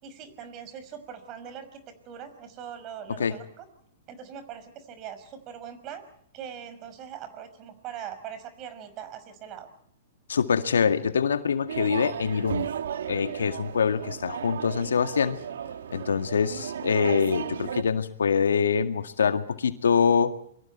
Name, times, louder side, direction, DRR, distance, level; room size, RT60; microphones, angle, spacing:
voice 1, 0.0-3.7 4.1-6.1 6.3-9.7, right 8 dB, 35° right, 11 dB, 5.6 m, -41 dB
voice 2, 10.3-12.7 13.1-15.4 15.9-20.3, left 6 dB, 85° left, 8 dB, 2.0 m, -24 dB
sound 1, 11.7-17.8, right 8 dB, 75° right, 1.8 m, -35 dB
29.0 x 23.5 x 4.5 m, 0.67 s
hypercardioid pair, 125°, 0 cm